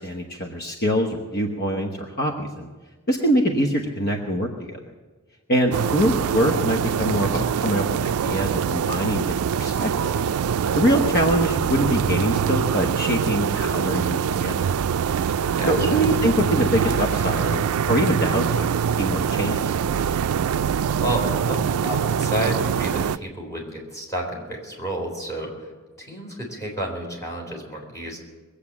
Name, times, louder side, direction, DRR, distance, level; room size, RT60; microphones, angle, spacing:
voice 1, 0.0-2.7 3.1-4.8 5.5-10.3 10.8-14.7 15.7-20.1, equal, 50° left, 2 dB, 1.1 m, -24 dB
sound 1, 5.7-23.2, right 7 dB, 90° right, 0.4 m, -24 dB
voice 2, 7.0-7.7 15.5-16.0 21.0-25.7 26.0-28.2, right 1 dB, 15° left, -2 dB, 3.8 m, -31 dB
21.5 x 8.3 x 7.2 m, 1.3 s
head